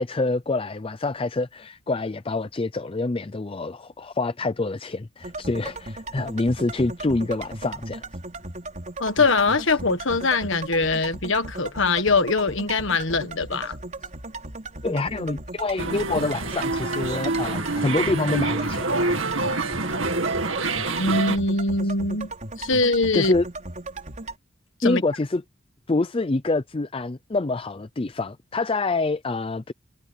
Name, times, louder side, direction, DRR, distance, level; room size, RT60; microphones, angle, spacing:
voice 1, 0.0-8.0 14.8-19.1 21.8-21.9 23.1-23.4 24.8-25.4 25.9-29.7, left 2 dB, 25° left, 0.5 m, -26 dB
sound 1, 5.2-24.4, right 2 dB, 35° right, 4.8 m, -37 dB
voice 2, 9.0-13.8 21.0-22.3 22.6-23.3 24.8-25.0, left 3 dB, 60° left, 1.6 m, -22 dB
sound 2, 15.8-21.4, right 3 dB, 65° right, 2.4 m, -26 dB
head